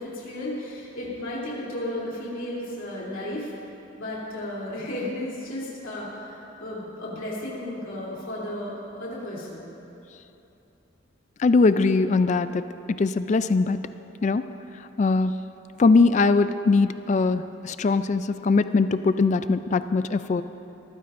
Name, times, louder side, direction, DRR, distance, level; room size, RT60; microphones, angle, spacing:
voice 1, 0.0-3.5 4.0-9.7 13.9-14.0, left 1 dB, 75° left, -6 dB, 3.1 m, -34 dB
voice 2, 11.4-13.8 14.2-14.4 15.0-15.4 15.8-20.4, left 3 dB, 35° left, 12 dB, 0.3 m, -21 dB
22.5 x 15.0 x 2.6 m, 2.9 s
head